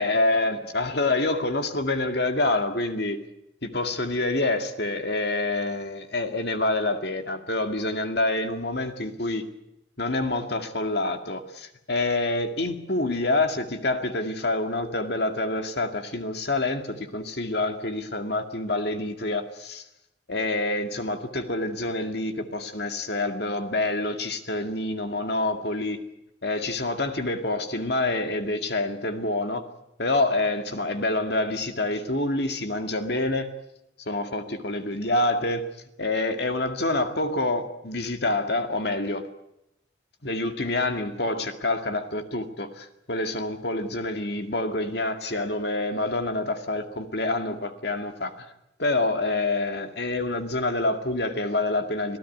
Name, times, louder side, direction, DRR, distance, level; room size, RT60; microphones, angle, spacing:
voice 1, 0.0-3.2 3.6-9.5 10.0-19.8 20.3-26.0 26.4-29.7 30.0-33.5 34.1-35.6 36.0-39.3 40.2-48.5 48.8-52.2, left 2 dB, 55° left, 2.2 m, -27 dB
26.5 x 16.5 x 9.4 m
head